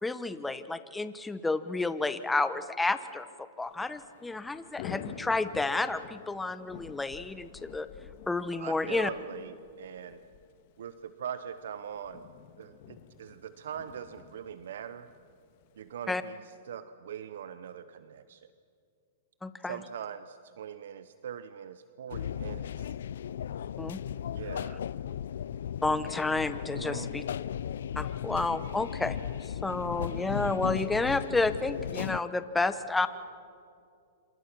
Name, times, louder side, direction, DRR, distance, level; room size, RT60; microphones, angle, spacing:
voice 1, 0.0-3.3 3.6-7.9 8.3-9.1 16.1-16.2 19.4-19.8 23.8-24.0 25.8-27.2 28.0-29.2 29.6-33.1, left 3 dB, 5° left, 12 dB, 1.0 m, -30 dB
Thunder / Rain, 3.7-16.3, left 9 dB, 50° left, 1.7 m, -49 dB
voice 2, 8.6-10.2 10.8-12.2 12.6-15.1 15.8-18.5 19.6-22.9 24.3-24.8 26.7-27.1, right 8 dB, 75° right, 12 dB, 0.8 m, -42 dB
sound 1, 22.1-32.2, left 9 dB, 75° left, 0.5 m, -36 dB
28.0 x 26.5 x 6.1 m, 2.4 s
hypercardioid pair, 135°, 0 cm